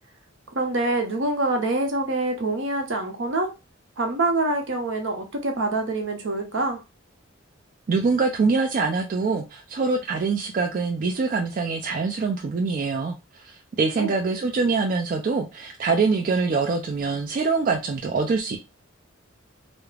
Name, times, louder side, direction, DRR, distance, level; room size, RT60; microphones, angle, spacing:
voice 1, 0.5-3.5 4.0-6.8 14.0-14.1, right 2 dB, 70° right, 0.7 m, -25 dB
voice 2, 7.9-18.6, right 4 dB, 45° right, 0.3 m, -24 dB
2.3 x 2.0 x 3.1 m
head